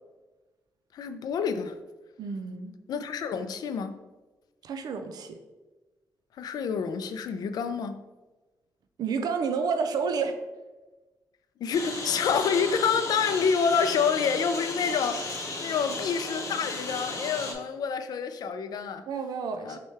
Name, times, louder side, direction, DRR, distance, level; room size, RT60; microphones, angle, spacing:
voice 1, 0.9-1.8 2.9-4.0 6.4-8.0 11.6-19.1 19.6-19.8, left 6 dB, 80° left, 0.3 m, -28 dB
voice 2, 2.2-2.7 4.6-5.4 9.0-10.4 19.1-19.8, right 5 dB, 80° right, 0.5 m, -30 dB
Engine, 11.7-17.5, left 2 dB, 50° left, 0.8 m, -35 dB
6.2 x 2.2 x 3.3 m
wide cardioid pair, 130°, 7 cm